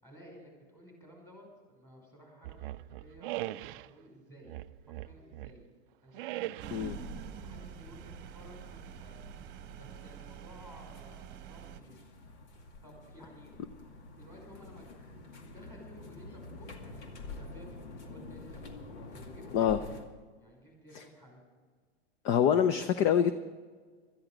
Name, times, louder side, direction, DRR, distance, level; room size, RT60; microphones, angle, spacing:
voice 1, 0.0-4.5 4.9-5.6 6.0-9.2 9.8-12.1 12.8-13.5 14.1-14.9 15.5-18.6 19.1-20.0 20.4-21.4, equal, 5° left, 0 dB, 5.5 m, -54 dB
sound 1, 2.4-3.9 4.5-5.6 6.1-7.0, right 16 dB, 50° right, 0.4 m, -40 dB
sound 2, 6.6-20.0, left 2 dB, 75° left, 2.3 m, -48 dB
sound 3, 6.6-11.8, right 11 dB, 30° right, 1.1 m, -47 dB
voice 2, 22.2-23.3, left 9 dB, 35° left, 11 dB, 0.6 m, -25 dB
17.0 x 13.0 x 5.1 m, 1.5 s
hypercardioid pair, 135°, 35 cm